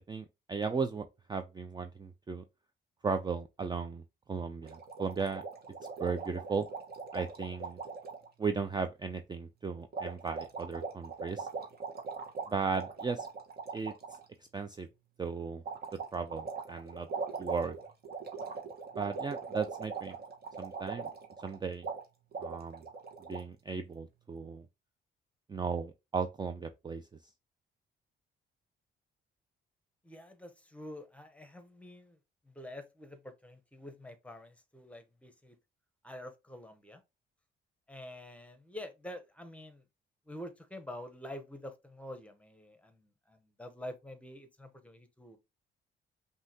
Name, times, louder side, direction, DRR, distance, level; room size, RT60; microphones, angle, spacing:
voice 1, 0.1-2.4 3.0-4.0 4.3-5.4 6.0-6.7 7.1-7.8 8.4-11.5 12.5-13.3 13.7-13.9 14.4-14.9 15.2-15.6 16.1-17.1 17.4-17.8 19.0-20.2 20.6-21.1 21.4-21.9 22.4-22.8 23.3-24.7 25.5-27.1, right 5 dB, 20° right, 0.4 m, -36 dB
sound 1, 4.7-8.3 9.9-14.2 15.7-21.6 21.8-22.0 22.3-23.4, right 5 dB, 50° right, 1.4 m, -40 dB
voice 2, 30.0-32.2 32.4-35.6 36.0-37.0 37.9-39.8 40.3-45.4, left 1 dB, 5° left, 0.9 m, -47 dB
5.5 x 2.7 x 2.8 m
cardioid pair, 90°, 20 cm